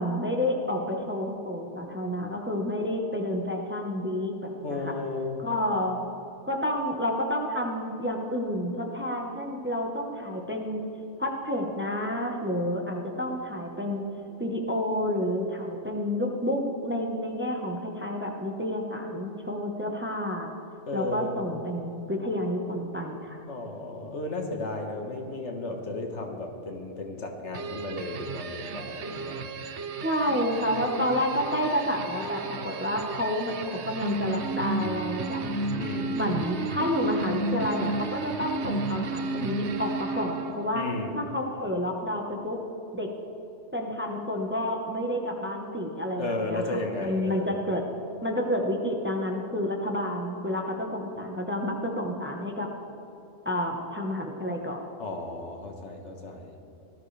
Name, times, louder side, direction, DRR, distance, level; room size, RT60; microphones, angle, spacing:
voice 1, 0.0-4.9 5.4-6.0 6.5-10.8 11.2-14.1 14.4-20.5 20.9-23.4 30.0-35.4 36.1-40.8 41.1-42.6 42.9-43.1 43.7-47.8 48.2-52.7 53.4-54.8, left 1 dB, 10° right, 1 dB, 1.1 m, -29 dB
voice 2, 4.6-5.4 20.9-21.4 23.5-29.5 35.7-36.4 40.7-41.2 46.2-47.6 55.0-56.5, left 2 dB, 75° left, 2 dB, 1.7 m, -34 dB
sound 1, 27.5-40.7, right 3 dB, 70° right, 1.1 m, -33 dB
18.5 x 13.0 x 3.4 m, 2.9 s
omnidirectional pair, 1.2 m